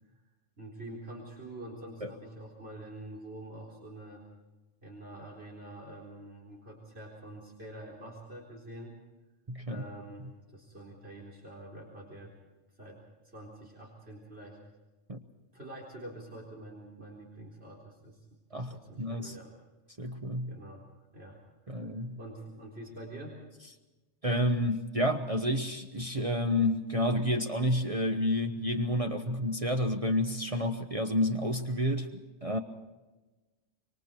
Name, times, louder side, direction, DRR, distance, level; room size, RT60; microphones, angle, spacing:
voice 1, 0.6-4.2 4.8-8.9 9.7-10.3 10.5-12.3 12.8-14.6 15.5-18.2 18.5-19.5 20.5-20.9 21.1-21.4 21.7-21.8 22.2-23.4, right 1 dB, 60° right, -1 dB, 4.3 m, -46 dB
voice 2, 9.5-9.8 15.1-15.2 18.5-19.4 20.0-20.5 21.7-22.2 24.2-32.6, left 1 dB, 30° right, 4 dB, 1.1 m, -30 dB
26.5 x 23.0 x 4.5 m, 1.1 s
omnidirectional pair, 1.2 m